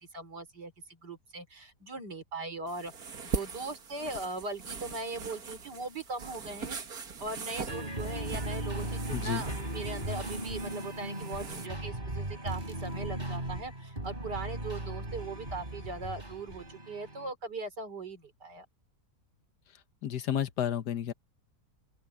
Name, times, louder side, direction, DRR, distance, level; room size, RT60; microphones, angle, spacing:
voice 1, 0.1-6.8 7.2-18.7, right 3 dB, 85° right, 4.4 m, -40 dB
sound 1, 2.7-11.7, right 5 dB, 65° right, 2.2 m, -41 dB
City Life Ambient, 7.7-17.3, right 1 dB, 30° right, 3.8 m, -37 dB
voice 2, 9.1-9.4 20.0-21.1, left 10 dB, 75° left, 1.6 m, -31 dB
open air
omnidirectional pair, 1.8 m